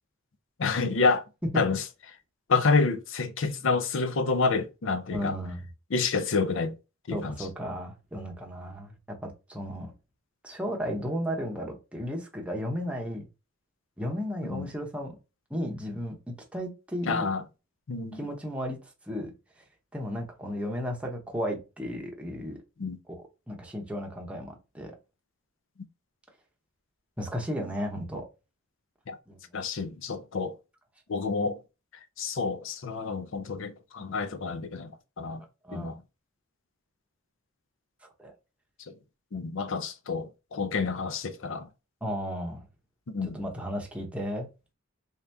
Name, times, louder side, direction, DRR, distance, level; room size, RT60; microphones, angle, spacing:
voice 1, 0.6-1.2 1.6-1.8 2.5-5.3 5.9-6.7 7.1-7.4 14.5-14.7 17.1-17.4 17.9-18.2 22.8-23.0 29.1-29.2 29.5-30.5 31.1-31.6 32.2-34.9 35.2-35.4 35.7-36.0 38.9-39.0 39.3-41.7 43.1-43.4, left 4 dB, 65° left, 0.5 m, -28 dB
voice 2, 5.1-5.6 7.1-9.9 10.4-13.3 14.0-15.2 15.5-17.3 18.1-18.8 19.1-19.3 19.9-22.6 23.1-24.9 27.2-28.2 29.3-29.4 35.6-35.9 38.2-38.3 42.0-42.6 43.2-44.5, equal, 5° right, 0.8 m, -34 dB
3.6 x 2.8 x 3.4 m
head